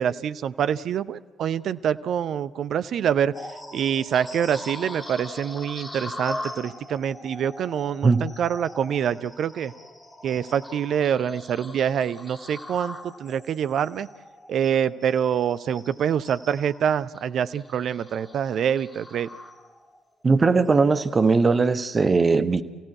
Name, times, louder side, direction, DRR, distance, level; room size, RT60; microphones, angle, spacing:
voice 1, 0.0-3.3 3.7-9.7 10.2-14.1 14.5-19.3, right 8 dB, 50° right, 0.7 m, -25 dB
sound 1, 3.3-20.0 20.4-20.7 21.2-21.4, left 1 dB, 15° left, 2.9 m, -41 dB
voice 2, 20.2-22.6, right 4 dB, 30° right, 1.2 m, -19 dB
29.0 x 16.5 x 8.3 m
figure-of-eight pair, 45°, 0 cm